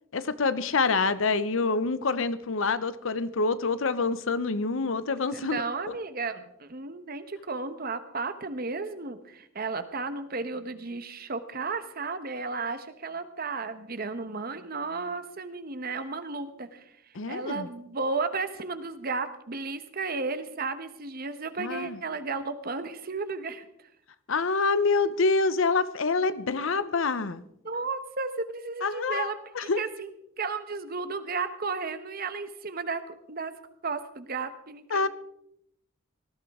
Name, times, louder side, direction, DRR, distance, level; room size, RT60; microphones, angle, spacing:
voice 1, 0.1-5.6 17.1-17.7 21.6-22.0 24.3-27.4 28.8-29.8 34.9-35.1, left 4 dB, 70° left, 14 dB, 0.7 m, -26 dB
voice 2, 5.3-16.8 17.3-23.7 27.6-30.1 30.4-33.5 33.8-35.1, right 4 dB, 45° right, 11 dB, 1.1 m, -34 dB
18.5 x 14.5 x 3.6 m, 0.78 s
head